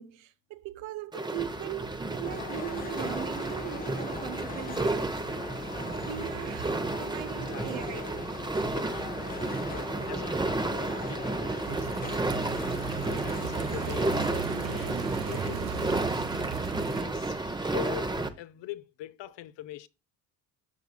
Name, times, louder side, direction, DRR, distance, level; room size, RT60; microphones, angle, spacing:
voice 1, 0.0-5.1 6.1-8.0, right 13 dB, 70° right, 0.8 m, -39 dB
sound 1, 1.1-18.3, right 2 dB, 10° right, 0.7 m, -32 dB
sound 2, 2.2-14.3, left 7 dB, 20° left, 0.3 m, -42 dB
voice 2, 7.5-8.1 8.6-11.9 12.2-12.5 12.9-16.2 16.8-19.9, left 14 dB, 60° left, 0.8 m, -43 dB
sound 3, 11.7-17.0, right 8 dB, 90° right, 1.0 m, -37 dB
12.0 x 5.8 x 2.2 m
supercardioid pair, 80°, 49 cm